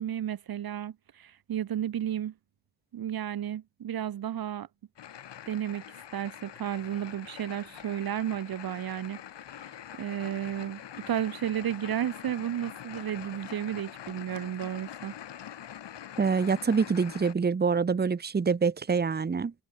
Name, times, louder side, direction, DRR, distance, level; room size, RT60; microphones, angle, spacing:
voice 1, 0.0-2.3 2.9-4.7 5.5-5.8 6.1-9.2 9.6-9.7 10.0-15.1, right 10 dB, 60° right, 1.2 m, -33 dB
sound 1, 5.0-17.3, left 10 dB, 80° left, 4.6 m, -45 dB
voice 2, 16.2-19.5, right 5 dB, 25° right, 1.2 m, -26 dB
wide cardioid pair, 175°, 42 cm